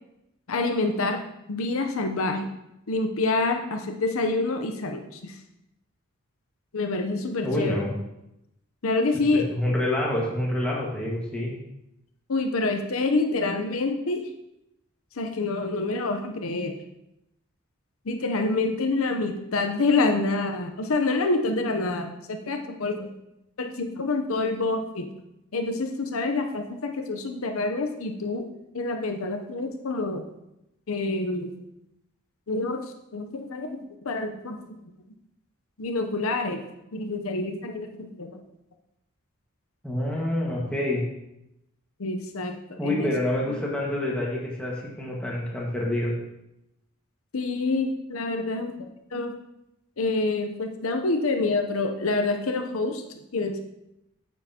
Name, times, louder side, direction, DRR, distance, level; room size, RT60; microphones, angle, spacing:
voice 1, 0.5-1.2 1.5-2.5 2.9-5.3 6.7-7.7 8.8-9.5 12.3-14.2 15.2-16.7 18.1-23.1 23.6-25.1 25.5-28.5 28.7-30.2 30.9-31.6 32.5-32.8 33.1-33.8 34.0-34.7 35.8-36.6 36.9-38.3 42.0-43.1 47.3-48.7 49.1-49.3 50.0-53.0 53.3-53.6, left 3 dB, 80° left, 5 dB, 0.7 m, -27 dB
voice 2, 7.4-7.9 9.1-11.5 39.8-41.0 42.8-46.1, left 1 dB, 5° left, -4 dB, 1.6 m, -27 dB
9.1 x 7.5 x 2.9 m, 0.86 s
head